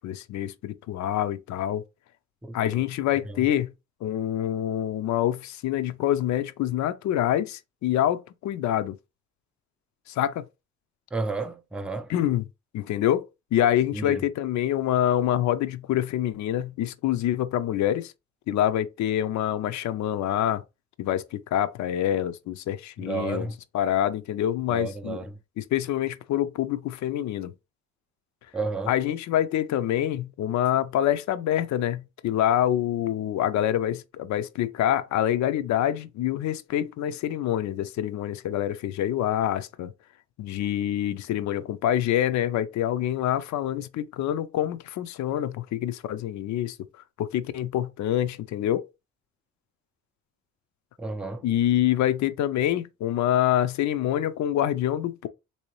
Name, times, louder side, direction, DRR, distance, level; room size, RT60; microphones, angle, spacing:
voice 1, 0.0-1.8 2.5-3.7 4.0-9.0 10.1-10.4 12.1-12.4 12.7-18.1 18.5-20.6 21.0-23.5 23.7-25.2 25.6-27.5 28.9-39.9 40.4-46.8 47.2-48.9 51.4-55.3, left 11 dB, 70° left, 0.5 m, -26 dB
voice 2, 2.4-2.8 3.2-3.5 11.1-12.1 13.9-14.2 23.0-23.6 24.7-25.4 28.5-28.9 51.0-51.5, right 3 dB, 5° right, 0.4 m, -32 dB
3.3 x 2.8 x 3.1 m
cardioid pair, 90°, 30 cm